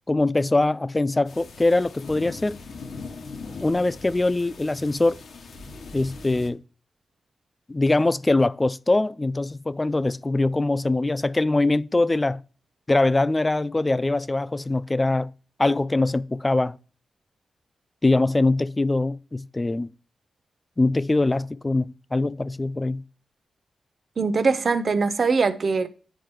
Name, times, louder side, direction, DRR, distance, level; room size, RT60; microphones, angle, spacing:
voice 1, 0.1-2.6 3.6-5.2 5.9-6.6 7.7-12.4 12.9-15.3 15.6-16.8 18.0-19.9 20.8-23.0, left 2 dB, 25° left, 0.4 m, -22 dB
sound 1, 1.3-6.5, left 4 dB, 75° left, 1.2 m, -40 dB
voice 2, 24.2-25.9, right 4 dB, 60° right, 0.8 m, -22 dB
9.9 x 4.4 x 3.2 m
supercardioid pair, 45°, 0 cm